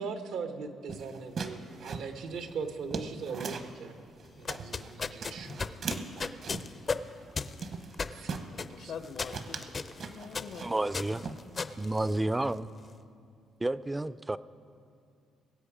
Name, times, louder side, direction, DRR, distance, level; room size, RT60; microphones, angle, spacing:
voice 1, 0.0-3.9 4.4-5.8 8.1-8.3 8.8-8.9, right 5 dB, 85° right, 8 dB, 0.9 m, -39 dB
sound 1, 0.9-3.8 4.2-4.9 5.2-6.8 7.2-7.4 7.6-8.5 8.9-9.1 9.3-11.0 11.2-11.8, right 5 dB, 60° right, 1.0 m, -39 dB
sound 2, 4.3-12.7, left 4 dB, 40° left, 0.5 m, -37 dB
voice 2, 8.5-12.2, left 6 dB, 70° left, 9 dB, 0.8 m, -47 dB
voice 3, 10.6-11.2 11.8-12.7 13.6-14.4, right 2 dB, 15° right, 16 dB, 0.4 m, -30 dB
22.0 x 8.0 x 5.0 m, 2.4 s
cardioid pair, 90°, 0 cm